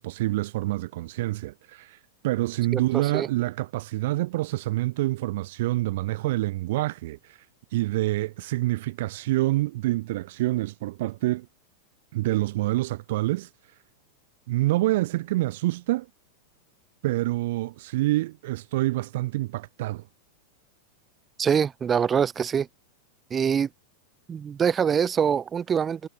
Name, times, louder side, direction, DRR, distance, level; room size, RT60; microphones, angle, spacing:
voice 1, 0.0-2.0 2.2-7.4 7.7-11.5 12.1-13.5 14.5-16.1 17.0-20.0, right 17 dB, 55° right, 0.7 m, -27 dB
voice 2, 21.4-22.7 23.3-23.7 24.3-26.1, right 7 dB, 20° right, 1.0 m, -24 dB
figure-of-eight pair, 90°, 0 cm